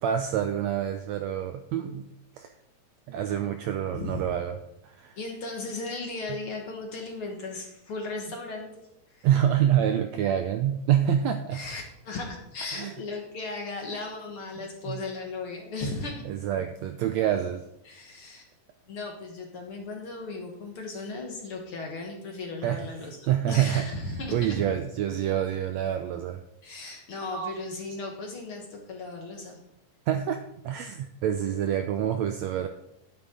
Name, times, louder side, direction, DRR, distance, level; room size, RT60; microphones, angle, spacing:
voice 1, 0.0-2.1 2.4-2.5 3.1-4.5 4.8-5.2 9.2-11.6 12.7-12.9 14.9-15.0 16.2-17.6 22.6-22.8 23.3-23.8 24.3-26.4 27.3-27.5 30.1-32.7, right 10 dB, 90° right, 7 dB, 1.5 m, -27 dB
voice 2, 5.2-8.7 9.1-9.3 11.5-16.2 17.8-18.5 18.9-24.6 26.6-29.6, left 3 dB, 55° left, 1 dB, 1.8 m, -36 dB
11.5 x 9.8 x 3.8 m, 0.80 s
omnidirectional pair, 3.8 m